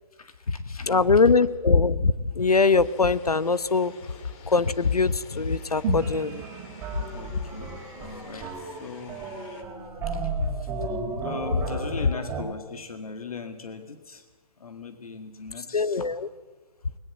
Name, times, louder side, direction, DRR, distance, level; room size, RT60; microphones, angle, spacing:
voice 1, 0.1-1.2 7.1-9.4 10.0-14.3 14.6-16.1, left 5 dB, 75° left, 7 dB, 1.9 m, -40 dB
voice 2, 0.9-3.9 4.5-6.4 15.7-16.3, left 4 dB, 90° left, 17 dB, 1.0 m, -22 dB
sound 1, 2.5-9.6, left 5 dB, 30° left, 2.7 m, -49 dB
sound 2, 5.8-9.8 10.1-10.2, right 9 dB, 30° right, 3.0 m, -38 dB
sound 3, 6.0-12.4, right 4 dB, 15° right, 5.0 m, -35 dB
20.5 x 20.0 x 7.5 m, 1.3 s
figure-of-eight pair, 135°, 19 cm